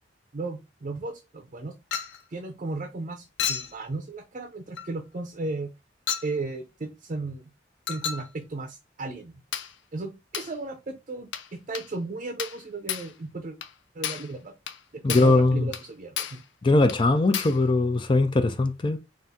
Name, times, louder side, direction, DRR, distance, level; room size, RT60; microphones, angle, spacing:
voice 1, 0.3-1.7 2.3-5.7 6.2-7.5 7.9-9.4 9.9-13.6 13.9-14.5 14.9-16.4, right 3 dB, 40° right, 0.6 m, -35 dB
Chink clink, 1.9-2.2 3.4-3.8 4.8-4.9 6.1-6.3 7.9-8.3 9.5-9.8 10.3-10.5 11.3-11.5 11.8-11.9 12.4-12.6 12.9-13.1 13.6-13.7 14.0-14.3 14.7-14.8 15.1-15.4 15.7-15.9 16.2-16.4 16.9-17.0 17.3-17.6, left 8 dB, 85° left, 0.5 m, -32 dB
voice 2, 15.0-15.7 16.6-19.0, left 2 dB, 25° left, 0.4 m, -21 dB
4.0 x 2.5 x 3.6 m
head